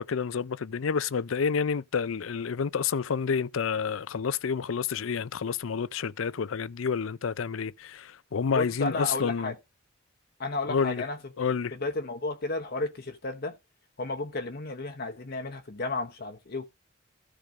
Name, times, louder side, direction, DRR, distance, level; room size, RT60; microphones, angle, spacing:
voice 1, 0.0-9.5 10.7-11.0 11.4-11.8, left 6 dB, 80° left, 0.5 m, -29 dB
voice 2, 8.5-9.6 10.4-11.2 11.7-13.5 14.0-16.7, left 2 dB, 50° left, 0.9 m, -33 dB
13.5 x 5.0 x 5.2 m
head